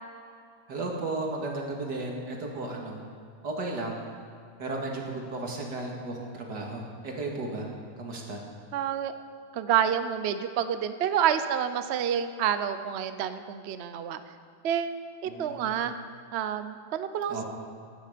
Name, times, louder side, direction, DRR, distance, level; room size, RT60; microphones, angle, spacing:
voice 1, 0.7-3.0 3.4-4.0 4.6-5.0 5.3-7.7 8.0-8.4 15.3-15.9 17.3-17.4, right 2 dB, 90° right, 0 dB, 2.6 m, -34 dB
voice 2, 8.7-9.1 9.5-14.2 14.6-15.9 16.3-17.4, right 9 dB, 55° right, 10 dB, 0.7 m, -28 dB
16.5 x 11.0 x 5.1 m, 2.3 s
omnidirectional pair, 1.8 m